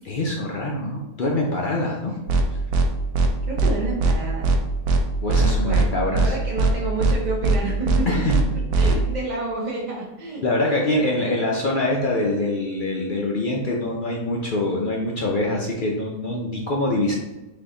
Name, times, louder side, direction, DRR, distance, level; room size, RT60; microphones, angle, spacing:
voice 1, 0.1-2.1 2.5-2.6 5.2-6.3 8.1-8.4 8.8-9.0 10.4-17.1, left 2 dB, 65° left, -2 dB, 0.5 m, -24 dB
sound 1, 2.3-2.4 2.7-2.9 3.1-3.3 3.6-3.7 4.0-4.1 4.4-4.6 4.8-5.0 5.3-5.9 6.1-6.3 6.6-6.7 7.0-7.1 7.4-7.6 7.8-8.0 8.3-8.4 8.7-8.9, right 3 dB, 85° right, 1.1 m, -19 dB
voice 2, 3.5-4.6 5.6-11.5, right 2 dB, 40° right, -5 dB, 0.6 m, -30 dB
4.2 x 2.8 x 3.7 m, 1.0 s
omnidirectional pair, 1.6 m